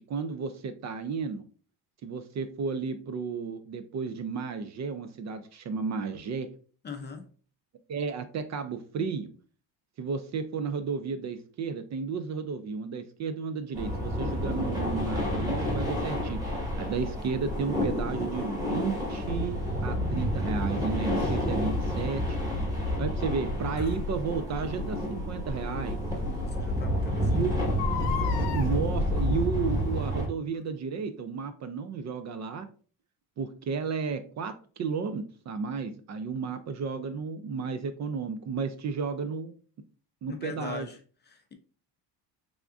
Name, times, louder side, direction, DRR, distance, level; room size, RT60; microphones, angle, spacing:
voice 1, 0.1-1.5 2.0-6.5 7.9-9.3 10.0-16.4 16.8-22.4 23.0-26.0 27.2-27.5 28.3-32.7 33.4-39.5 40.2-40.9, right 5 dB, 45° right, 0.4 m, -33 dB
voice 2, 6.8-7.3 26.2-27.7 40.3-41.5, left 5 dB, 25° left, 0.5 m, -41 dB
sound 1, 13.7-30.3, left 1 dB, 10° right, 1.3 m, -29 dB
Crying sobbing, 21.2-21.3 23.8-24.0 25.5-25.6 26.2-26.3 26.5-26.6 27.6-28.7 29.7-30.0 30.6-30.7, left 10 dB, 70° left, 0.8 m, -35 dB
3.5 x 3.5 x 2.4 m
cardioid pair, 115°, 42 cm